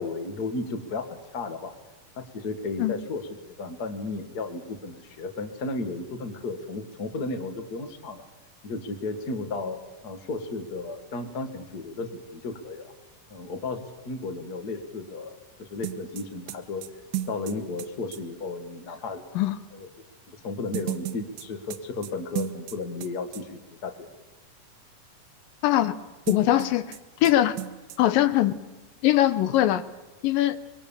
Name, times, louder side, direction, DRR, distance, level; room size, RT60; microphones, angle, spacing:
voice 1, 0.0-1.7 2.2-8.3 8.6-12.9 13.3-16.8 17.3-19.2 19.7-19.9 20.3-24.1, left 3 dB, 35° left, 7 dB, 1.8 m, -34 dB
sound 1, 15.8-18.2 20.7-23.1 23.3-23.4 26.3-27.0 27.2-27.3 27.6-28.0, right 14 dB, 70° right, 2.3 m, -34 dB
voice 2, 25.6-26.0 26.3-26.9 27.2-27.6 28.0-28.6 29.0-29.8 30.2-30.6, left 13 dB, 80° left, 12 dB, 2.6 m, -21 dB
25.0 x 22.5 x 7.2 m, 1.1 s
omnidirectional pair, 4.0 m